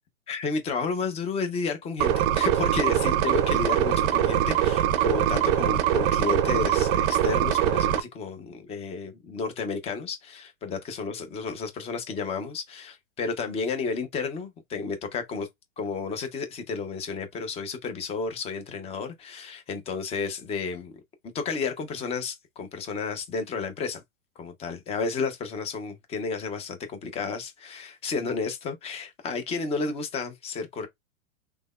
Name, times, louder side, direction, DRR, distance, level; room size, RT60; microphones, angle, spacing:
voice 1, 0.3-15.5 15.8-21.0 21.3-24.0 24.4-30.9, left 4 dB, 15° left, 0.5 m, -32 dB
sound 1, 2.0-8.0, right 11 dB, 40° right, 0.5 m, -23 dB
3.3 x 2.1 x 2.2 m
hypercardioid pair, 120°, 42 cm